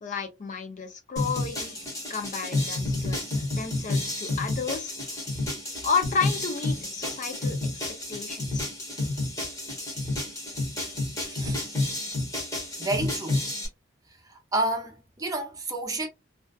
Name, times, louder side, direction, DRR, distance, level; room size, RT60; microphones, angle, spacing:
voice 1, 0.0-1.8 2.1-5.4 5.8-7.6 8.1-8.7, left 5 dB, 40° left, 0.4 m, -32 dB
sound 1, 1.2-13.7, left 2 dB, 20° left, 1.1 m, -30 dB
voice 2, 11.3-11.6 12.8-13.4 14.3-16.1, right 2 dB, 20° right, 0.6 m, -30 dB
2.5 x 2.2 x 2.2 m
head